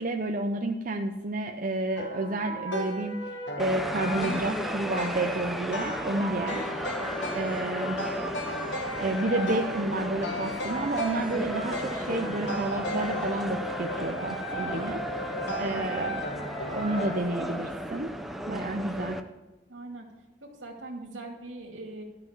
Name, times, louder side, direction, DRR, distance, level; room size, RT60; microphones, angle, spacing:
voice 1, 0.0-3.2 3.6-6.6 7.3-8.0 8.9-16.2 16.7-18.1 18.5-19.2, right 2 dB, 45° right, 3 dB, 0.7 m, -30 dB
sound 1, 2.0-17.2, equal, 70° left, 1.5 m, -35 dB
sound 2, 3.6-19.2, equal, ahead, 0.5 m, -35 dB
voice 2, 19.7-20.1 20.4-22.0, right 2 dB, 85° right, 1 dB, 2.5 m, -41 dB
13.0 x 6.0 x 7.3 m, 1.1 s
head